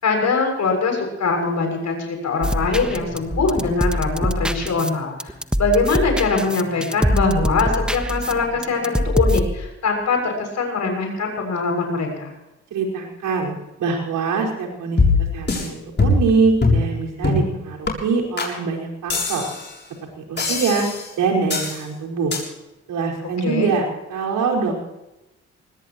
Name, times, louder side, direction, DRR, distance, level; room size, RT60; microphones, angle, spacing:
voice 1, 0.0-12.3 23.4-23.7, left 4 dB, 55° left, 3 dB, 6.9 m, -22 dB
sound 1, 2.4-9.6, equal, 5° right, 1.4 m, -24 dB
voice 2, 12.7-13.5 13.8-15.0 15.3-19.4 20.2-20.9 21.2-22.3 22.9-24.8, right 4 dB, 70° right, -1 dB, 5.2 m, -23 dB
sound 2, 15.0-15.7 16.0-16.3 16.6-16.9 17.2-17.5 17.9-18.0 18.4-18.5 19.1-19.7 20.4-21.1 21.5-21.8 22.3-22.4, left 3 dB, 35° left, 7.2 m, -20 dB
23.0 x 20.0 x 3.1 m, 0.97 s
hypercardioid pair, 50°, 33 cm